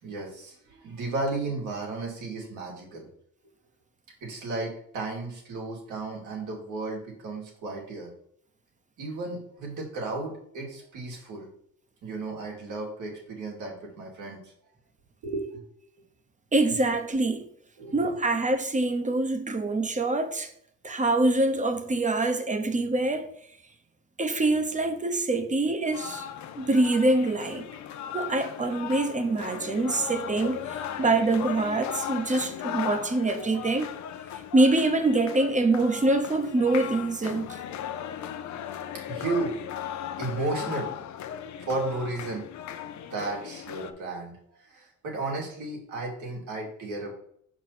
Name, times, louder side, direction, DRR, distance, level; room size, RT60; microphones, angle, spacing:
voice 1, 0.0-3.1 4.2-8.1 9.0-11.5 12.0-14.5 15.2-15.6 17.8-18.1 39.1-40.9 41.6-42.5 42.9-44.4 44.7-47.1, right 3 dB, 80° right, 2.7 m, -34 dB
voice 2, 16.5-17.4 17.9-20.5 20.8-23.3 24.2-26.3 26.6-27.7 28.1-33.9 34.5-37.6, right 2 dB, 25° right, 1.0 m, -25 dB
sound 1, 25.9-43.9, left 10 dB, 70° left, 0.7 m, -37 dB
5.6 x 4.7 x 4.2 m
cardioid pair, 90°, 30 cm